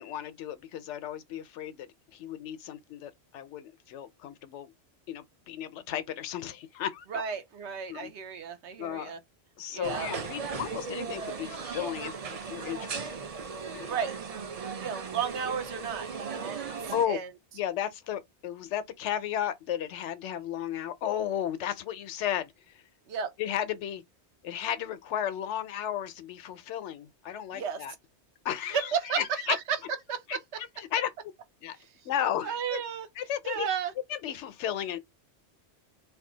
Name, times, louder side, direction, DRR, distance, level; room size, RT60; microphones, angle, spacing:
voice 1, 0.0-4.7 5.1-7.2 7.9-8.1 8.8-9.1 9.6-13.2 13.7-14.0 16.7-17.2 17.5-22.8 23.4-24.0 24.4-27.9 28.4-29.6 30.3-31.1 31.6-31.8 32.0-32.8 33.2-33.7 34.1-35.0, left 10 dB, 90° left, 0.9 m, -34 dB
voice 2, 7.1-9.2 9.7-10.1 13.8-14.1 14.8-16.7 17.1-17.3 23.1-23.3 27.5-27.8 28.7-29.8 30.1-30.2 32.4-33.1 33.4-33.9, right 7 dB, 80° right, 1.0 m, -33 dB
sound 1, 9.8-17.1, right 5 dB, 50° right, 0.5 m, -37 dB
2.7 x 2.3 x 3.8 m
omnidirectional pair, 1.2 m